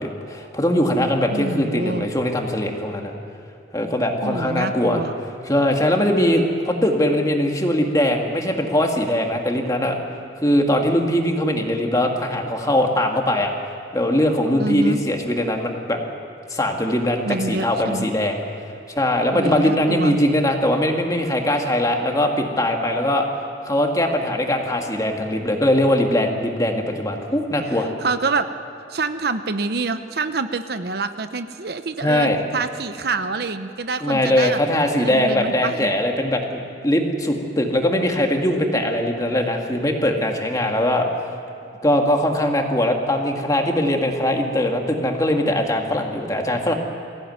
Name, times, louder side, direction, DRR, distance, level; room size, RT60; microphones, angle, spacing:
voice 1, 0.0-3.1 3.7-5.0 5.4-10.0 10.4-13.5 13.9-16.0 16.5-18.4 19.0-23.2 23.6-27.9 32.0-32.4 34.0-41.1 41.8-46.7, left 1 dB, 20° left, 2 dB, 2.0 m, -21 dB
voice 2, 1.3-2.1 4.2-5.1 14.6-15.0 17.3-18.1 19.3-20.2 27.6-28.5 28.9-34.6 35.0-35.9, right 3 dB, 60° right, 10 dB, 0.8 m, -26 dB
23.5 x 15.5 x 9.4 m, 2.8 s
head